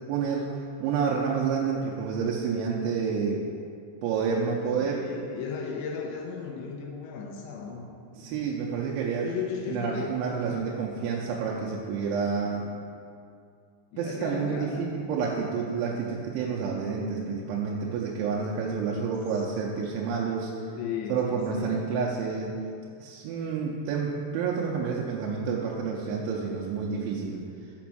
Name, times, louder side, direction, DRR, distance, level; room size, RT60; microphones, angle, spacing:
voice 1, 0.1-3.5 4.0-5.0 8.1-9.4 9.7-12.7 14.0-20.5 21.1-22.5 23.0-27.4, right 5 dB, 85° right, -3 dB, 2.9 m, -29 dB
voice 2, 4.8-7.9 8.3-8.4 9.2-10.6 12.4-12.7 13.9-14.8 20.8-21.8 23.6-23.8, left 6 dB, 80° left, 0 dB, 2.9 m, -36 dB
6.1 x 6.0 x 5.9 m, 2.3 s
omnidirectional pair, 5.6 m